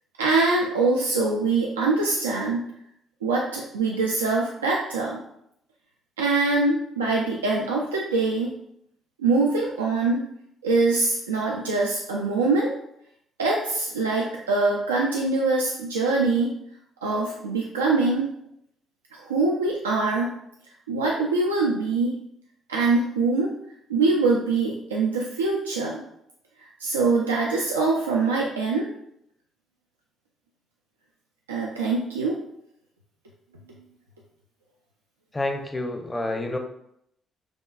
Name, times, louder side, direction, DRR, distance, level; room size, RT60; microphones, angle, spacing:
voice 1, 0.2-2.7 3.2-5.2 6.2-8.5 9.2-10.2 10.6-12.7 13.4-16.5 17.0-18.3 19.1-20.3 20.9-22.2 22.7-23.5 23.9-26.0 26.8-28.9 31.5-32.4, right 3 dB, 90° right, -3 dB, 0.3 m, -23 dB
voice 2, 35.3-36.6, left 2 dB, 20° left, 5 dB, 0.6 m, -28 dB
6.1 x 2.2 x 2.3 m, 0.75 s
hypercardioid pair, 50°, 0 cm